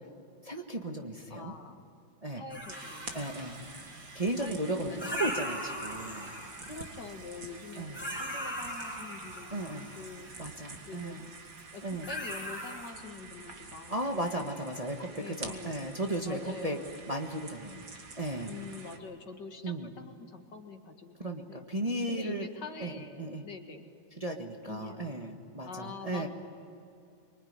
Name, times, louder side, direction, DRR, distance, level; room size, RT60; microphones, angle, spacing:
voice 1, 0.4-1.5 2.2-2.4 3.1-3.6 4.1-6.3 7.8-8.0 9.5-9.9 10.4-11.3 11.8-12.1 13.9-16.8 17.1-17.8 18.1-18.5 19.6-19.9 21.2-22.5 22.8-23.4 24.2-26.3, right 1 dB, 20° right, 2 dB, 1.5 m, -35 dB
voice 2, 1.3-2.0 2.3-5.3 6.6-10.3 10.6-11.2 11.7-14.7 15.2-15.9 16.3-17.1 18.5-21.7 22.1-23.9 24.7-25.2 25.6-26.3, left 4 dB, 60° left, 4 dB, 2.5 m, -46 dB
sound 1, 2.5-4.5 5.0-7.2 7.6-10.4 11.6-11.8 12.0-12.9, equal, 5° left, 7.0 m, -40 dB
sound 2, 2.7-19.0, right 4 dB, 45° right, 2.4 m, -48 dB
25.0 x 24.0 x 9.7 m, 2.6 s
omnidirectional pair, 2.1 m